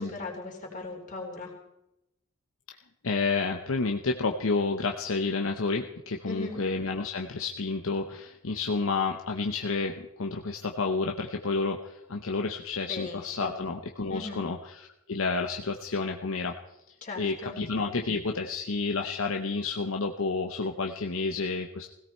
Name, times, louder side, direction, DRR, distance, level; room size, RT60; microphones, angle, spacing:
voice 1, 0.0-1.5 6.3-6.6 12.9-13.6 14.1-14.5 17.0-17.6, left 2 dB, 35° left, 0 dB, 3.5 m, -38 dB
voice 2, 3.0-16.5 17.2-21.9, left 4 dB, 65° left, 3 dB, 0.8 m, -30 dB
17.0 x 17.0 x 4.4 m, 0.87 s
head